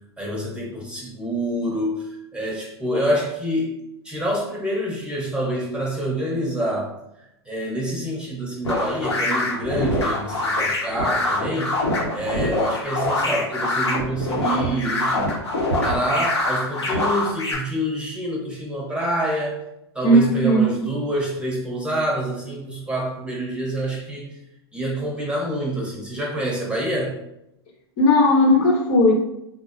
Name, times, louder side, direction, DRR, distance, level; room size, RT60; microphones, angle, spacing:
voice 1, 0.2-3.7 4.0-6.9 7.5-11.8 12.1-15.3 15.8-19.6 19.9-24.3 24.7-27.2, right 1 dB, 5° right, -3 dB, 0.9 m, -26 dB
sound 1, 8.6-17.5, left 1 dB, 90° left, 0.8 m, -24 dB
voice 2, 20.0-20.8 28.0-29.1, equal, 50° left, -1 dB, 0.8 m, -16 dB
3.8 x 2.1 x 2.5 m, 0.84 s
hypercardioid pair, 100°, 14 cm